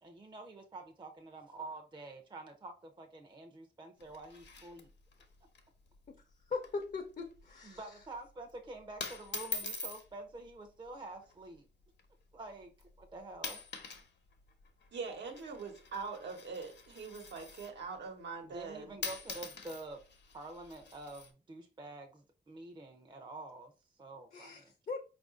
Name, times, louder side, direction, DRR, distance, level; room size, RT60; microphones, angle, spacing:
voice 1, 0.0-4.9 7.6-11.6 12.3-12.7 13.0-13.6 18.4-20.0 20.3-23.7 24.0-24.7, right 2 dB, 25° right, 0.5 m, -48 dB
sound 1, 4.0-5.3 5.5-5.6 5.9-6.2 6.6-6.9 7.2-7.5 8.3-8.5 9.0-10.0 11.0-11.3 12.0-12.1 12.8-13.0 13.3-14.1 14.3-17.8 18.7-18.8 19.0-21.3, left 3 dB, 85° left, 0.9 m, -44 dB
voice 2, 6.5-7.8 24.3-25.0, left 4 dB, 50° left, 0.6 m, -40 dB
voice 3, 14.9-19.0, right 5 dB, 85° right, 1.0 m, -43 dB
4.6 x 2.5 x 3.6 m
wide cardioid pair, 115°, 18 cm